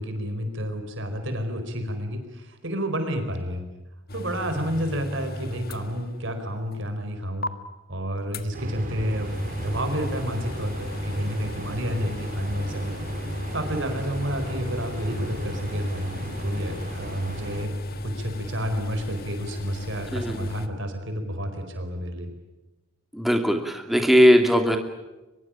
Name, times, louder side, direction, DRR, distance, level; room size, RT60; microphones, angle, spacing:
voice 1, 0.0-3.7 4.1-7.5 7.9-13.0 13.5-22.3, equal, 55° right, 7 dB, 4.7 m, -30 dB
sound 1, 4.1-6.4 6.7-6.8 7.4-7.5 8.3-20.7, left 1 dB, 45° left, 1.6 m, -34 dB
sound 2, 8.5-17.6, right 1 dB, 35° right, 3.8 m, -37 dB
voice 2, 20.1-20.5 23.1-24.8, equal, ahead, 4 dB, 2.5 m, -19 dB
23.5 x 22.5 x 8.8 m, 1.1 s
head